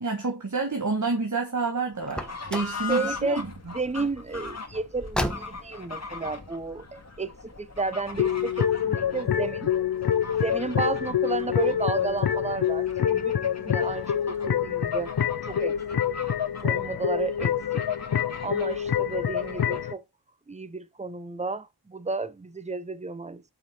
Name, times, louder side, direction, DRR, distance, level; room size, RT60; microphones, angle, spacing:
voice 1, 0.0-3.4, right 3 dB, 45° right, 1.5 m, -28 dB
Fowl / Bird, 1.9-20.0, left 4 dB, 40° left, 1.9 m, -41 dB
Car, 2.0-2.8 4.9-5.8, equal, ahead, 1.1 m, -32 dB
voice 2, 2.9-9.7 10.4-15.1 15.5-16.0 16.6-17.9 18.4-20.0 20.5-23.4, right 3 dB, 15° right, 0.7 m, -32 dB
sound 1, 8.1-19.9, left 9 dB, 65° left, 0.6 m, -26 dB
5.8 x 5.6 x 5.5 m
wide cardioid pair, 65°, 41 cm